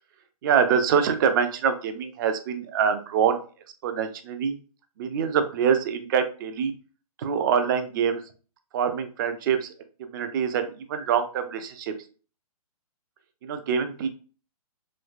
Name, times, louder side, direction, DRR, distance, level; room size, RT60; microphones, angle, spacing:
voice 1, 0.4-3.4 3.8-4.6 5.0-6.7 7.2-8.2 8.7-9.7 10.0-11.9 13.4-14.1, right 7 dB, 35° right, 9 dB, 0.4 m, -25 dB
3.1 x 3.0 x 2.4 m, 0.38 s
hypercardioid pair, 140°, 19 cm